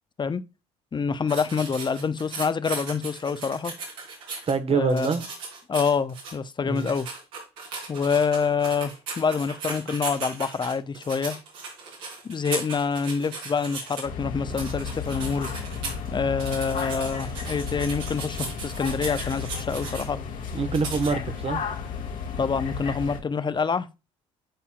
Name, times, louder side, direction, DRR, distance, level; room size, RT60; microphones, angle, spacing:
voice 1, 0.9-3.7 4.7-5.1 5.7-7.1 7.9-11.4 12.2-15.5 16.1-20.2 22.4-23.9, left 5 dB, 30° left, 0.7 m, -26 dB
sound 1, 1.3-4.5 4.9-6.3 6.7-14.0 14.5-16.1 16.4-20.0 20.7-21.1, right 4 dB, 80° right, 3.3 m, -37 dB
voice 2, 4.5-5.2 6.6-6.9 20.5-21.6, right 5 dB, 40° right, 1.3 m, -25 dB
sound 2, 14.1-23.2, left 6 dB, 60° left, 1.8 m, -33 dB
11.5 x 4.2 x 2.4 m
hypercardioid pair, 60°, 16 cm